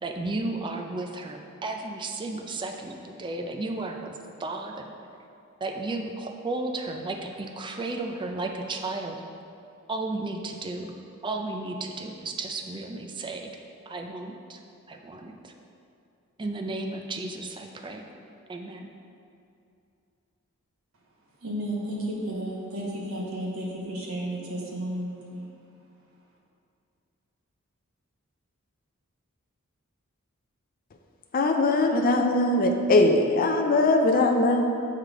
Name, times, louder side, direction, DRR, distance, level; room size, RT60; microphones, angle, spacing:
voice 1, 0.0-4.1 4.4-4.9 5.6-9.2 9.9-10.9 11.2-13.5 13.9-14.6 14.9-15.5 16.4-18.1 18.5-18.9, right 2 dB, 20° right, 3 dB, 0.4 m, -33 dB
voice 2, 21.4-25.5, right 1 dB, 70° right, -4 dB, 1.3 m, -33 dB
voice 3, 31.3-34.6, left 2 dB, 40° left, 3 dB, 0.4 m, -21 dB
7.4 x 4.9 x 3.7 m, 2.6 s
head